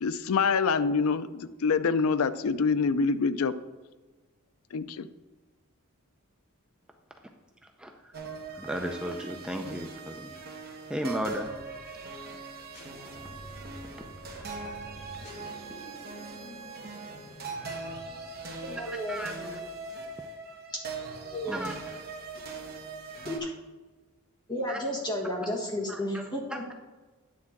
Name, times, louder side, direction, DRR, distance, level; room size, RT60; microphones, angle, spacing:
voice 1, 0.0-3.5 4.7-5.1, left 5 dB, 70° left, 13 dB, 0.4 m, -26 dB
sound 1, 8.1-23.4, right 4 dB, 45° right, 1.2 m, -41 dB
voice 2, 8.6-10.3 10.9-11.5 18.8-19.3 21.5-21.7 24.7-24.8 25.9-26.0 26.5-26.7, equal, 5° right, 3 dB, 0.5 m, -34 dB
sound 2, 12.7-18.7, equal, 45° left, 2.3 m, -48 dB
voice 3, 18.4-19.5 21.2-21.6 23.2-23.5 24.5-26.7, left 1 dB, 20° left, -2 dB, 1.5 m, -33 dB
9.7 x 3.7 x 5.9 m, 1.2 s
head